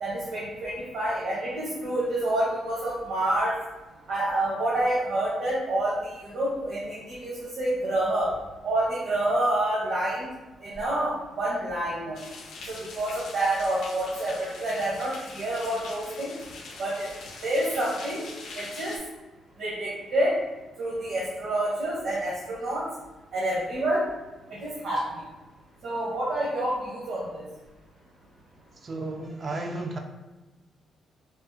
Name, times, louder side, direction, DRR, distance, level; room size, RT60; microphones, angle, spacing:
voice 1, 0.0-3.5 4.1-8.3 8.6-10.3 10.6-12.2 12.7-16.3 16.8-17.1 17.4-18.3 18.5-18.9 19.6-20.3 20.8-22.8 23.3-24.0 24.5-25.0 25.8-27.4, right 1 dB, 75° right, -7 dB, 0.8 m, -28 dB
sound 1, 12.1-19.0, left 3 dB, 80° left, 0.5 m, -43 dB
voice 2, 28.8-30.0, right 2 dB, 35° right, 3 dB, 0.3 m, -33 dB
3.4 x 2.0 x 2.7 m, 1.2 s
cardioid pair, 125°, 0 cm